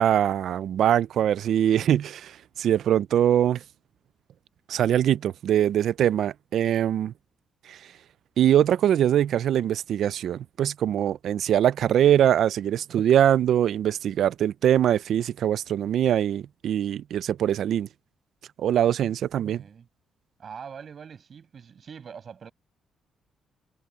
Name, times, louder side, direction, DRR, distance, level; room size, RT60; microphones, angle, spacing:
voice 1, 0.0-3.6 4.7-7.1 7.7-7.8 8.4-17.9 18.6-19.6, right 10 dB, 60° right, 0.4 m, -22 dB
voice 2, 19.5-19.9 20.4-22.5, right 7 dB, 40° right, 7.0 m, -43 dB
cardioid pair, 160°, 0 cm